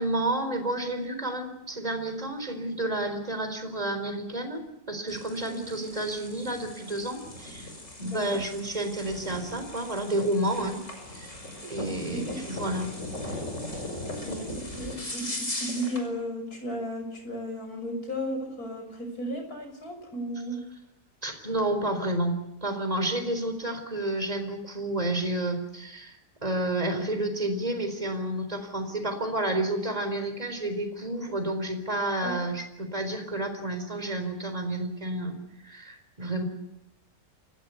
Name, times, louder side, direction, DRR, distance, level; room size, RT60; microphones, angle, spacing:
voice 1, 0.0-7.7 8.0-10.8 11.1-11.3 11.6-12.9 14.2-14.4 21.2-35.4 35.6-36.4, right 1 dB, 25° right, 7 dB, 4.2 m, -30 dB
sound 1, 5.1-16.1, left 1 dB, 50° left, 5.9 m, -38 dB
voice 2, 8.0-8.4 12.1-12.4 14.2-20.6 32.2-32.4, equal, 65° left, 5 dB, 6.9 m, -35 dB
29.5 x 16.0 x 8.3 m, 0.85 s
omnidirectional pair, 1.7 m